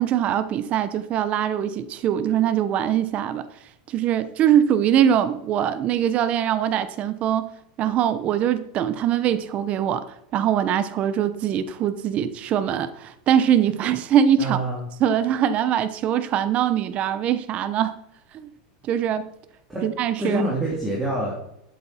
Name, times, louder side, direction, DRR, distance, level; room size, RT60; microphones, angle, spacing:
voice 1, 0.0-3.5 3.9-7.5 7.8-10.1 10.3-14.6 15.0-17.9 18.3-18.5 18.8-19.3 19.8-20.4, right 9 dB, 30° right, 0.8 m, -22 dB
voice 2, 14.4-14.8 19.7-19.8 20.2-21.3, right 1 dB, 10° right, 3.2 m, -26 dB
12.0 x 8.0 x 4.4 m
supercardioid pair, 150°, 4 cm